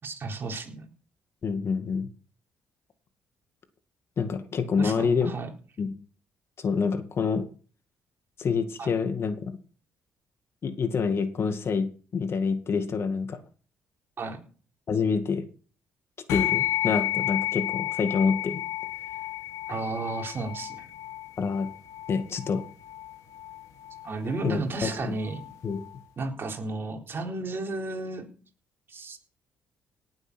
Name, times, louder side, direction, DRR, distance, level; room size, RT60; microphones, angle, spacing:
voice 1, 0.0-0.9 4.8-5.5 8.8-8.9 14.2-14.4 19.7-20.9 24.0-25.4 26.2-28.3 28.9-29.2, right 3 dB, 45° right, 3 dB, 4.0 m, -33 dB
voice 2, 1.4-2.1 4.2-5.3 5.8-5.9 6.6-7.5 8.4-9.5 10.6-13.4 14.9-15.4 16.3-18.6 21.4-21.7 22.1-22.6 24.4-25.1 25.6-25.8, left 5 dB, 50° left, 9 dB, 2.1 m, -27 dB
sound 1, 16.3-26.0, left 14 dB, 90° left, 1.8 m, -32 dB
18.0 x 8.0 x 6.3 m, 0.40 s
cardioid pair, 80°, 5 cm